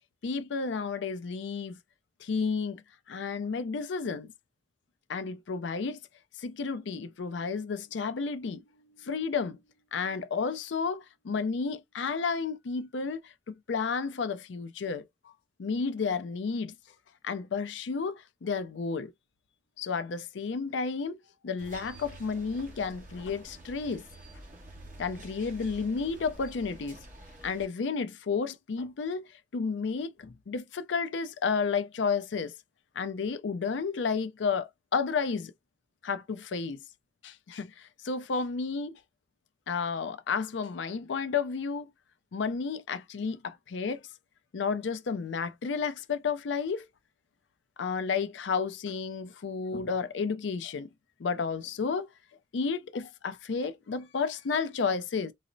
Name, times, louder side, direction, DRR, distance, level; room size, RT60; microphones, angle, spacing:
voice 1, 0.2-1.8 2.2-2.8 3.1-4.3 5.1-6.0 6.4-9.6 9.9-15.3 15.6-16.7 17.2-19.1 19.8-21.2 21.4-24.0 25.0-27.0 27.4-32.5 33.0-35.5 36.0-36.8 37.2-39.0 39.7-41.9 42.3-44.0 44.5-46.9 47.8-50.9 51.2-52.1 52.5-55.3, left 5 dB, 75° left, 0.4 m, -32 dB
sound 1, 21.6-27.7, right 1 dB, 45° right, 1.3 m, -48 dB
3.9 x 2.1 x 2.6 m
head